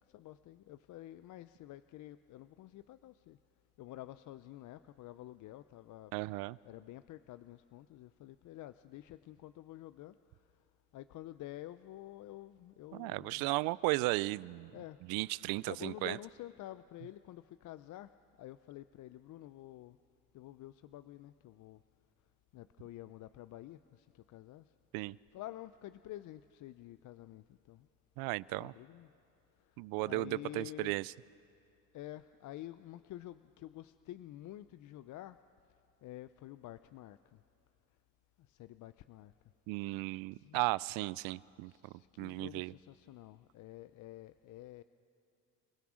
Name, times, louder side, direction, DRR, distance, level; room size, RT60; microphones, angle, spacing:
voice 1, 0.1-3.4 3.8-6.1 6.6-10.1 10.9-13.5 14.7-15.0 15.6-18.1 18.4-20.0 20.3-21.8 22.5-24.6 25.3-27.9 28.5-29.1 30.0-31.0 31.9-35.4 36.0-37.2 38.5-39.3 40.4-40.6 41.7-44.8, left 14 dB, 60° left, 13 dB, 0.5 m, -49 dB
voice 2, 6.1-6.6 12.9-14.7 15.1-16.2 24.9-25.2 28.2-28.7 29.8-31.1 39.7-41.7 42.2-42.7, right 21 dB, 80° right, 22 dB, 0.5 m, -35 dB
29.0 x 16.5 x 6.3 m, 2.5 s
supercardioid pair, 90°, 35 cm